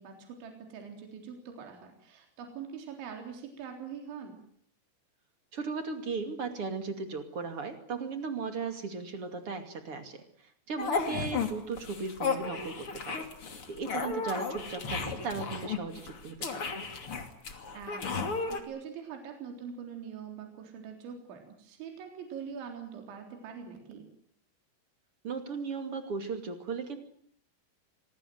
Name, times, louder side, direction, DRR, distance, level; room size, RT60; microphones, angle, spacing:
voice 1, 0.0-4.4 11.1-11.2 17.7-24.1, right 7 dB, 65° right, 4 dB, 6.0 m, -43 dB
voice 2, 5.5-10.2 10.7-13.3 13.7-16.7 25.2-27.0, right 4 dB, 40° right, 7 dB, 2.4 m, -36 dB
sound 1, 10.8-11.5 11.8-18.6, left 4 dB, 35° left, 2.6 m, -34 dB
25.5 x 19.5 x 9.4 m, 0.65 s
omnidirectional pair, 5.7 m